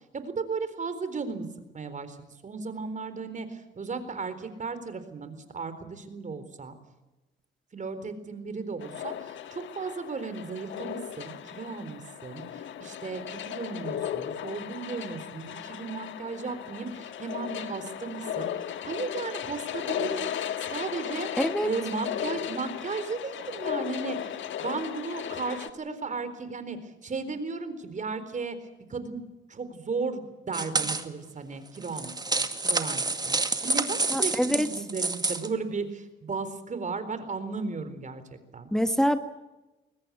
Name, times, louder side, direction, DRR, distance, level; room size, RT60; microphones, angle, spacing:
voice 1, 0.1-1.5 1.7-2.2 2.4-6.7 7.7-21.3 21.6-28.6 28.9-29.2 29.5-38.7, right 4 dB, 40° right, 11 dB, 4.1 m, -35 dB
sound 1, 8.8-25.7, left 10 dB, 75° left, 1.6 m, -36 dB
voice 2, 21.4-21.7 34.1-34.7 38.7-39.2, equal, 5° left, 8 dB, 1.6 m, -25 dB
sound 2, 30.5-31.0 31.8-35.5, right 3 dB, 20° right, 2.2 m, -28 dB
22.5 x 20.0 x 8.4 m, 1.1 s
cardioid pair, 90°, 20 cm